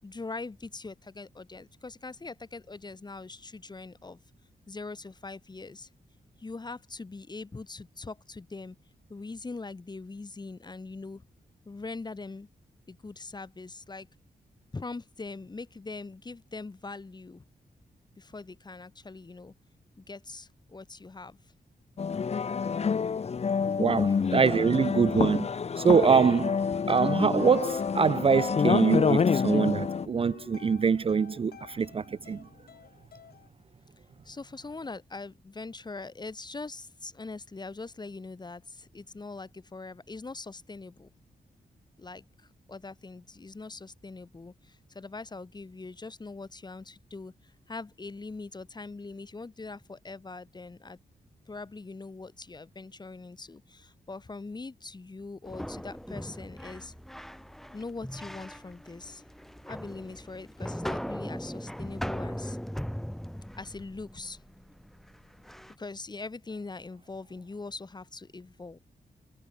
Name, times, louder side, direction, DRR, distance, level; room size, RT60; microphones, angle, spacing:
voice 1, 0.0-4.2 4.7-5.9 6.4-8.8 9.1-11.2 11.6-12.5 12.9-14.1 14.7-17.4 18.2-19.5 20.0-21.4 24.0-24.2 34.2-41.1 42.0-51.0 51.5-56.9 57.7-59.2 59.7-62.6 63.5-64.4 65.8-68.8, left 3 dB, 25° left, 4.8 m, -42 dB
sound 1, 22.0-30.1, left 6 dB, 45° left, 0.9 m, -27 dB
voice 2, 23.8-25.5 25.8-32.4, right 6 dB, 35° right, 0.5 m, -24 dB
sound 2, 26.7-33.5, left 8 dB, 80° left, 2.4 m, -46 dB
sound 3, 55.5-65.7, equal, ahead, 3.2 m, -39 dB
wide cardioid pair, 130°, 16 cm